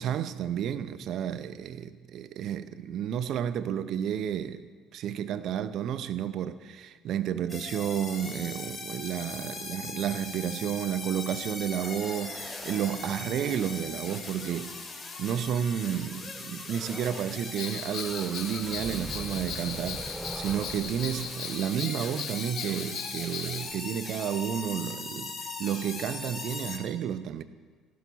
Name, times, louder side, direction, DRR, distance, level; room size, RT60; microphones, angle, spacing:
voice 1, 0.0-14.8 15.2-27.4, right 9 dB, 60° right, 0.6 m, -31 dB
sound 1, 7.5-26.8, left 3 dB, 25° left, 2.5 m, -40 dB
sound 2, 11.8-15.6 16.7-17.5 17.7-22.6, right 2 dB, 10° right, 0.4 m, -44 dB
Bell, 17.6-23.7, left 6 dB, 60° left, 1.2 m, -38 dB
14.5 x 12.5 x 4.0 m
hypercardioid pair, 60°, 0 cm